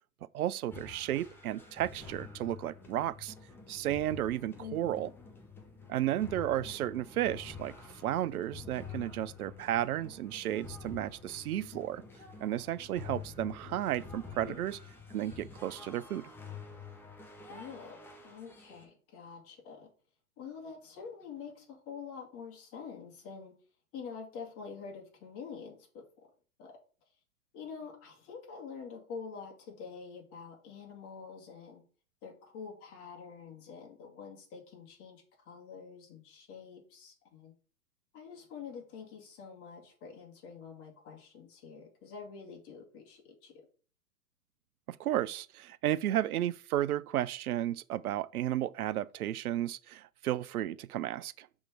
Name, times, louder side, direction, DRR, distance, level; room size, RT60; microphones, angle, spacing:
voice 1, 0.3-3.3 3.7-5.1 5.9-7.7 8.0-12.0 12.4-14.8 15.1-16.3 45.0-51.5, right 12 dB, 75° right, 0.5 m, -33 dB
sound 1, 0.7-18.9, left 5 dB, 5° left, 0.6 m, -48 dB
voice 2, 4.5-5.1 14.4-14.6 17.5-19.9 20.4-23.5 23.9-26.0 26.6-26.8 27.5-31.8 32.2-37.5 38.1-43.5, left 6 dB, 30° left, 2.1 m, -46 dB
6.1 x 3.7 x 4.4 m
hypercardioid pair, 115°, 45 cm